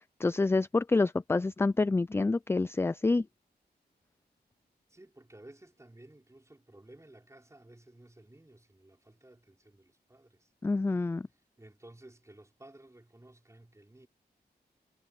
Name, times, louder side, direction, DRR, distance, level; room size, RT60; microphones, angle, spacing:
voice 1, 0.0-3.3 10.6-11.3, left 3 dB, 15° left, 0.3 m, -27 dB
voice 2, 4.9-10.5 11.6-14.1, right 1 dB, 15° right, 5.1 m, -55 dB
wide cardioid pair, 100°, 17 cm